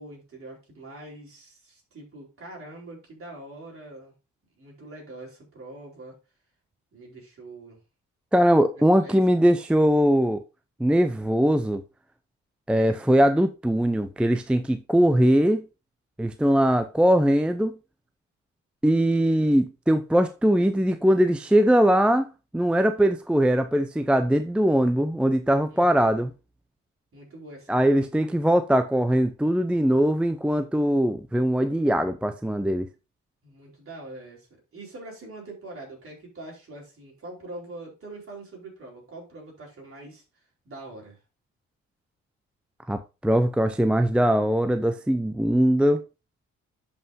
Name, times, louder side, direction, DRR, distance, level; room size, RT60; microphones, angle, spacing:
voice 1, 0.0-4.1 4.6-6.2 6.9-7.8 8.8-9.2 25.7-26.1 27.1-28.1 33.4-40.2 40.6-41.2, right 2 dB, 45° right, 4.3 m, -43 dB
voice 2, 8.3-10.4 10.8-11.8 12.7-15.6 16.2-17.8 18.8-22.3 22.5-26.3 27.7-32.9 42.9-46.0, equal, 5° right, 0.5 m, -21 dB
11.0 x 5.6 x 2.7 m
cardioid pair, 90°, 30 cm